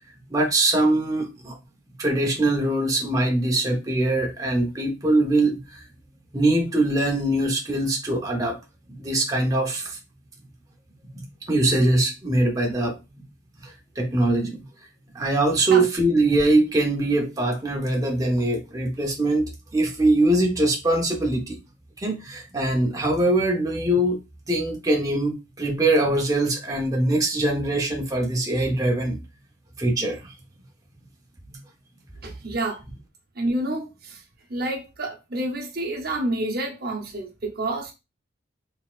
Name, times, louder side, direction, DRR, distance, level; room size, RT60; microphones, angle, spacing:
voice 1, 0.3-1.6 2.0-5.8 6.3-8.6 9.0-10.0 11.1-13.0 13.6-14.6 15.1-21.6 22.0-24.2 24.5-29.2 29.8-30.4 31.5-31.6, right 1 dB, 20° right, 0.8 m, -22 dB
voice 2, 32.2-32.8 33.4-34.2 34.5-37.9, right 1 dB, 50° right, 0.9 m, -28 dB
3.9 x 3.5 x 2.4 m
head